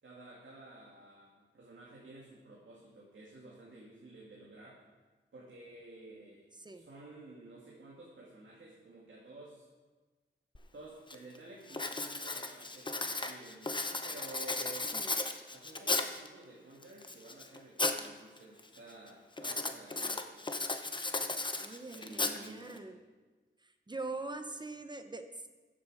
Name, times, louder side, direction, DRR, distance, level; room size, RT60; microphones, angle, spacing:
voice 1, 0.0-4.9 5.3-6.5 6.7-9.7 10.7-15.0 15.5-20.4 21.9-23.0, right 2 dB, 75° right, -5 dB, 2.3 m, -52 dB
Writing, 10.6-10.7 11.1-11.4 11.7-16.3 16.8-18.1 18.4-18.8 19.4-22.8, left 2 dB, 25° left, 0.8 m, -35 dB
voice 2, 21.6-23.0 23.6-25.5, right 3 dB, 20° right, 7 dB, 0.9 m, -43 dB
14.0 x 7.6 x 5.0 m, 1.3 s
wide cardioid pair, 95°, 20 cm